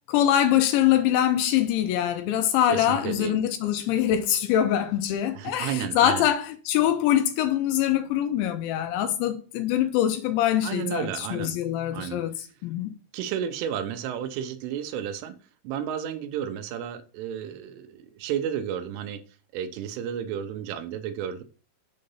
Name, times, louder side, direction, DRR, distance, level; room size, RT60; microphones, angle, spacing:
voice 1, 0.1-12.3 12.6-12.9, left 11 dB, 80° left, 2.8 m, -24 dB
voice 2, 2.7-3.4 5.3-6.3 10.6-11.6 11.9-12.2 13.1-15.4 15.7-19.2 19.5-21.4, right 9 dB, 90° right, 3.4 m, -32 dB
7.6 x 3.9 x 5.5 m
omnidirectional pair, 5.6 m